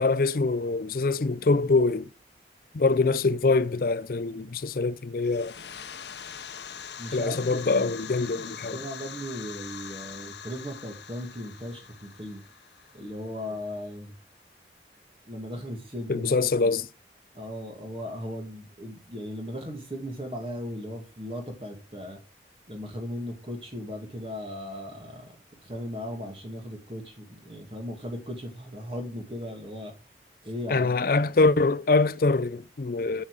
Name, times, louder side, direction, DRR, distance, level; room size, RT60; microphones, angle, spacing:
voice 1, 0.0-2.1 2.7-5.5 7.1-8.8 16.1-16.9 30.7-33.2, left 3 dB, 50° left, 0.5 m, -24 dB
sound 1, 5.2-13.7, left 8 dB, 75° left, 0.9 m, -43 dB
voice 2, 7.0-8.0 8.3-12.4 12.9-14.2 15.3-16.7 17.3-22.2 22.7-29.9 30.4-31.0, equal, 30° right, 2.1 m, -37 dB
8.5 x 7.0 x 4.8 m
head